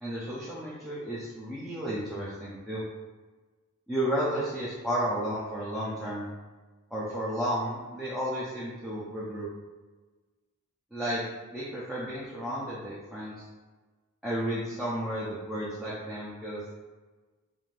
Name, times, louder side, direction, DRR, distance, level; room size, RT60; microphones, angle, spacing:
voice 1, 0.0-2.8 3.9-6.3 6.9-9.5 10.9-11.2 11.5-13.3 14.2-16.7, equal, ahead, -9 dB, 0.4 m, -32 dB
2.5 x 2.5 x 3.2 m, 1.3 s
head